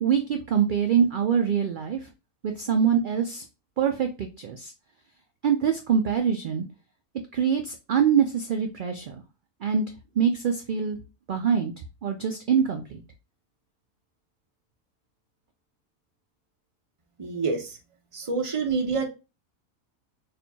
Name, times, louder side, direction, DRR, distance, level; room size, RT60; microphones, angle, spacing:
voice 1, 0.0-2.1 2.4-3.5 3.8-4.7 5.4-6.6 7.3-9.2 9.6-9.8 10.2-11.0 11.3-11.7 12.0-13.0, right 7 dB, 90° right, 0.4 m, -24 dB
voice 2, 17.2-17.8 18.1-19.1, right 4 dB, 30° right, 0.6 m, -27 dB
4.3 x 2.6 x 2.7 m
omnidirectional pair, 1.4 m